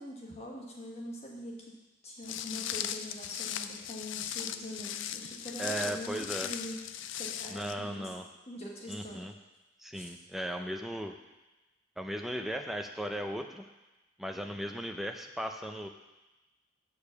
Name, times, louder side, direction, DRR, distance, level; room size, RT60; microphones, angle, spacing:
voice 1, 0.0-1.6 2.0-6.8 7.1-8.1 8.5-9.3 9.9-10.0, left 1 dB, 30° left, -2 dB, 1.5 m, -43 dB
Walk footsteps, 2.2-7.7, left 10 dB, 65° left, 0.4 m, -38 dB
voice 2, 5.6-6.5 7.5-8.3 8.9-9.3 9.8-11.2 12.0-13.7 14.2-15.9, equal, ahead, 4 dB, 0.5 m, -37 dB
6.8 x 4.9 x 6.7 m, 1.1 s
head